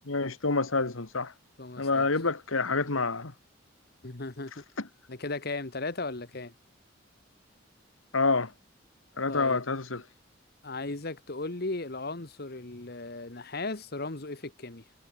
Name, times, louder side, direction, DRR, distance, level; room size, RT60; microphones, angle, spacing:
voice 1, 0.1-1.3 1.8-3.3 8.1-8.5 9.2-10.0, left 3 dB, 90° left, 1.8 m, -27 dB
voice 2, 1.6-2.1 4.0-4.6 5.1-6.5 9.3-9.6 10.6-14.8, left 3 dB, 50° left, 1.5 m, -36 dB
head